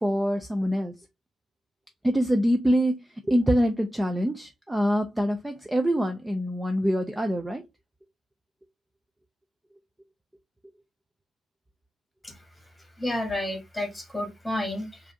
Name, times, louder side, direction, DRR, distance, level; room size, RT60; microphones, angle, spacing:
voice 1, 0.0-0.9 2.0-3.0 3.3-7.6, equal, 10° right, 0.5 m, -25 dB
voice 2, 13.0-15.1, left 1 dB, 10° left, 1.2 m, -31 dB
4.8 x 2.5 x 2.8 m
cardioid pair, 110°, 0 cm